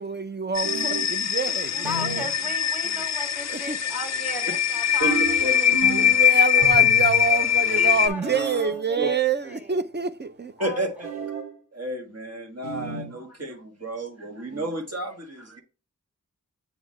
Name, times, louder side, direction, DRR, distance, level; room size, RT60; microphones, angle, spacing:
voice 1, 0.0-2.2 2.8-3.0 3.5-3.8 5.9-10.5, right 5 dB, 30° right, 0.6 m, -27 dB
sound 1, 0.6-8.1, left 9 dB, 55° left, 0.5 m, -22 dB
sound 2, 0.6-1.2 1.8-2.3 5.0-6.2 6.6-7.3 8.2-8.7 11.0-11.5 12.6-13.1, right 4 dB, 75° right, 2.6 m, -32 dB
voice 2, 1.7-6.8 7.2-9.7 10.6-10.8, left 2 dB, 5° right, 2.0 m, -37 dB
voice 3, 5.0-6.1 9.0-9.1 10.6-11.1 11.7-15.6, right 1 dB, 50° right, 1.5 m, -32 dB
8.0 x 3.8 x 3.1 m
wide cardioid pair, 60°, 33 cm